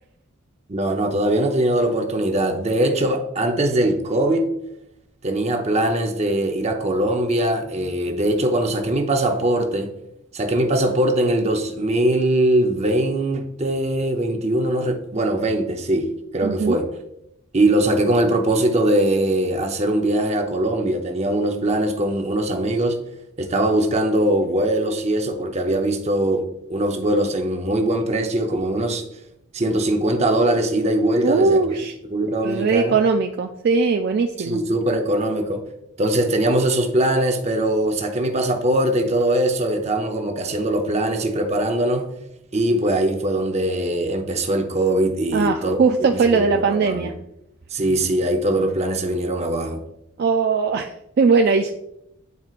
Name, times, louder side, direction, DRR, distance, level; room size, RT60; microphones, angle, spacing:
voice 1, 0.7-4.5 5.2-9.9 10.3-16.1 16.3-16.9 17.5-23.0 23.4-29.0 29.5-31.6 32.1-33.0 34.4-35.6 36.0-42.1 42.5-45.8 46.1-47.1 47.7-49.8, right 1 dB, 30° right, 3 dB, 0.7 m, -21 dB
voice 2, 16.4-16.8 31.2-31.9 32.4-34.6 45.3-47.1 50.2-51.7, right 4 dB, 50° right, 4 dB, 0.3 m, -20 dB
9.4 x 4.4 x 2.5 m, 0.82 s
head